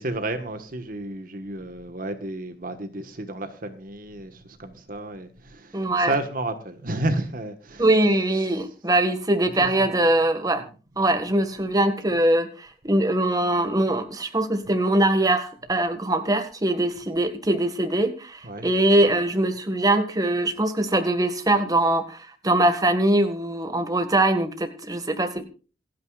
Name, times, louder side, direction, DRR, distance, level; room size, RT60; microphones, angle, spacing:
voice 1, 0.0-7.9 8.3-8.5 9.6-10.0 10.5-10.7 18.4-18.7, right 2 dB, 50° right, 1.5 m, -32 dB
voice 2, 5.7-6.1 7.8-10.6 11.0-25.4, right 1 dB, 20° right, 1.8 m, -22 dB
27.5 x 9.5 x 2.5 m
head